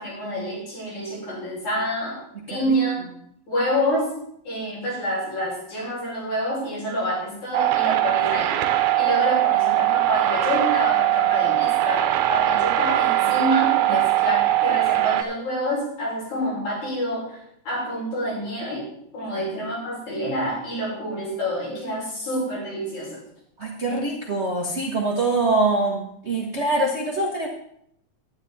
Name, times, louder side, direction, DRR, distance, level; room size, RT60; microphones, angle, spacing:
voice 1, 0.0-2.2 2.5-3.0 3.5-4.1 4.5-8.6 9.0-17.4 17.7-18.9 19.1-23.2, equal, 75° left, -6 dB, 7.2 m, -27 dB
sound 1, 7.5-15.2, right 14 dB, 85° right, 2.1 m, -21 dB
voice 2, 23.6-27.5, right 2 dB, 40° right, -2 dB, 0.9 m, -24 dB
11.0 x 10.5 x 4.2 m, 0.70 s
omnidirectional pair, 3.3 m